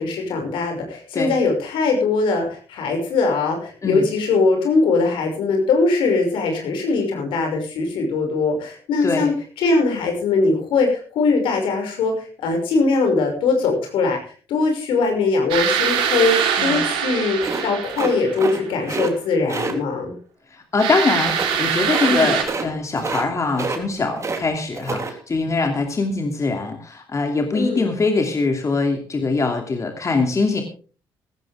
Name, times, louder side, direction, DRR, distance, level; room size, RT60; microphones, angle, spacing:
voice 1, 0.0-14.2 14.5-20.1 22.0-22.3 27.5-27.8, left 3 dB, 80° left, 3 dB, 6.0 m, -21 dB
voice 2, 9.0-9.3 16.6-16.8 20.5-30.6, left 3 dB, 35° left, 4 dB, 2.7 m, -22 dB
sound 1, 15.5-18.7 20.8-22.4, right 8 dB, 85° right, 3.7 m, -23 dB
sound 2, 17.4-18.6 18.8-19.1 19.5-19.7 21.3-21.6 21.9-22.1 22.4-22.7 22.9-23.3 23.5-24.4 24.7-25.1, right 4 dB, 35° right, 3.3 m, -27 dB
16.5 x 14.5 x 3.6 m, 0.39 s
supercardioid pair, 65°, 9 cm